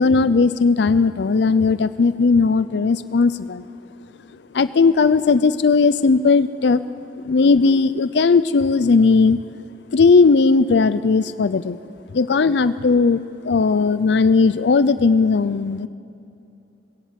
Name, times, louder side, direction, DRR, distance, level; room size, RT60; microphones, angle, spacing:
voice 1, 0.0-3.7 4.5-6.8 7.2-9.4 9.9-11.8 12.1-15.9, left 4 dB, 65° left, 14 dB, 0.5 m, -17 dB
21.0 x 17.5 x 7.4 m, 2.7 s
head